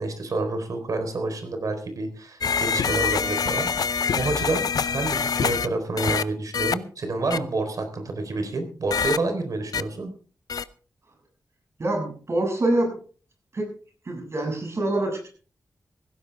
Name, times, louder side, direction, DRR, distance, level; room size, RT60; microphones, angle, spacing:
voice 1, 0.0-4.6 4.9-10.1, right 2 dB, 65° right, 6 dB, 4.1 m, -28 dB
sound 1, 2.4-5.7 6.0-6.2 6.5-6.7 7.3-7.4 8.9-9.2 9.7-9.8 10.5-10.6, left 6 dB, 75° left, 0.7 m, -25 dB
voice 2, 11.8-13.0 13.5-13.7 14.1-15.3, right 1 dB, 45° right, 3 dB, 7.0 m, -25 dB
17.0 x 16.0 x 3.5 m, 0.40 s
wide cardioid pair, 135°, 6 cm